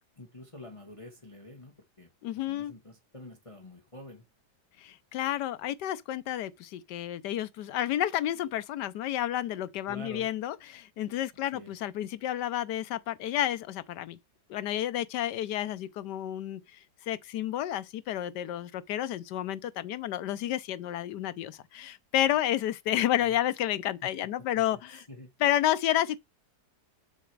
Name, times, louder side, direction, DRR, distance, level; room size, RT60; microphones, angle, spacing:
voice 1, 0.2-2.1 2.5-4.2 9.9-10.3 11.5-11.7 23.1-23.3 24.0-24.1 24.5-25.3, left 1 dB, 20° left, 1.3 m, -47 dB
voice 2, 2.2-2.7 4.8-14.2 14.5-16.8 17.1-25.0 25.4-26.2, left 12 dB, 80° left, 1.3 m, -30 dB
6.8 x 4.9 x 4.7 m
omnidirectional pair, 1.8 m